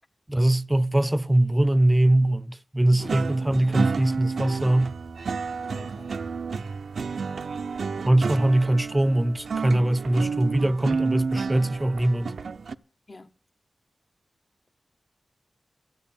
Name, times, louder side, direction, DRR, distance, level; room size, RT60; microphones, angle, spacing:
voice 1, 0.3-4.9 8.0-12.3, right 1 dB, 20° right, 0.6 m, -22 dB
sound 1, 3.0-12.8, right 5 dB, 80° right, 0.6 m, -31 dB
voice 2, 5.7-6.2 13.1-13.3, left 3 dB, 40° left, 1.4 m, -44 dB
13.0 x 8.1 x 8.6 m
cardioid pair, 40°, 0 cm